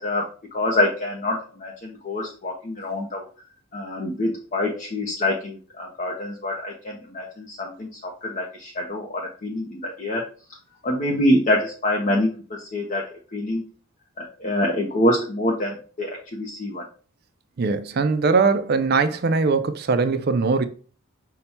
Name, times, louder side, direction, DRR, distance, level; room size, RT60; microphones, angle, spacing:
voice 1, 0.0-3.2 3.7-10.2 10.8-13.6 14.2-16.8, left 1 dB, 40° left, 0.6 m, -26 dB
voice 2, 17.6-20.6, right 4 dB, 50° right, 0.4 m, -21 dB
5.5 x 2.2 x 4.2 m
head